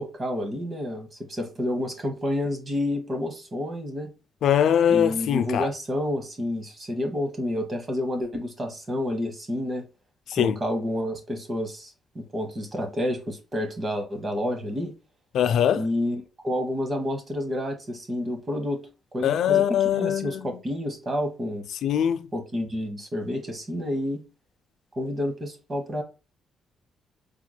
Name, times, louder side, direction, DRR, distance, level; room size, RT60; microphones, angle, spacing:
voice 1, 0.0-4.1 4.9-9.8 10.4-14.9 15.7-18.9 19.1-21.7 22.3-24.2 24.9-26.0, left 1 dB, 35° right, 1.3 m, -29 dB
voice 2, 4.4-5.7 10.3-10.6 15.3-15.9 19.2-20.6 21.8-22.3, left 9 dB, 70° left, 0.4 m, -22 dB
4.7 x 3.5 x 2.3 m
cardioid pair, 90°, 0 cm